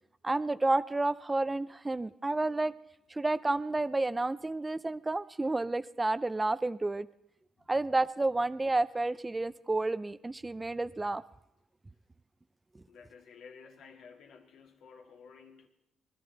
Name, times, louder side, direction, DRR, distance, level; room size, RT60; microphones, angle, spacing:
voice 1, 0.2-2.7 3.1-7.1 7.7-11.2 12.7-12.8, right 2 dB, 20° right, 16 dB, 0.4 m, -30 dB
voice 2, 12.9-15.7, left 5 dB, 75° left, 3 dB, 2.0 m, -54 dB
20.5 x 12.0 x 4.0 m, 0.83 s
cardioid pair, 90°, 0 cm